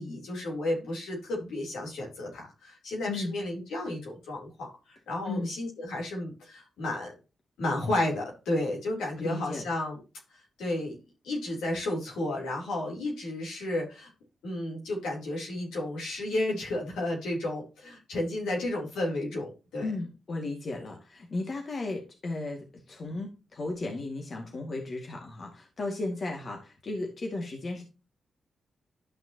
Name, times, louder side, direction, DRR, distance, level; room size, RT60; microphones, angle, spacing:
voice 1, 0.0-7.1 7.6-10.0 10.3-11.0 11.2-14.1 14.4-19.9, left 1 dB, 85° left, -1 dB, 3.5 m, -32 dB
voice 2, 3.1-3.4 5.3-5.5 9.2-9.7 19.8-27.8, left 2 dB, 55° left, 1 dB, 2.2 m, -35 dB
12.0 x 6.0 x 3.0 m, 0.31 s
supercardioid pair, 45°, 0 cm